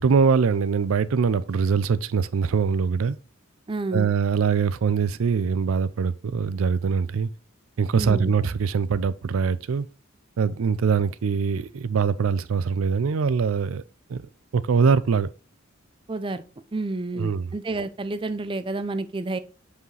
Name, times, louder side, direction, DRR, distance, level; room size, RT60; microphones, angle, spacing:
voice 1, 0.0-3.2 3.9-7.3 7.8-9.9 10.4-13.8 14.1-14.2 14.5-15.3 17.2-17.5, right 5 dB, 75° right, 0.4 m, -23 dB
voice 2, 3.7-4.1 7.9-8.3 16.1-16.4 16.7-19.4, right 2 dB, 25° right, 0.5 m, -29 dB
8.0 x 4.9 x 3.2 m
head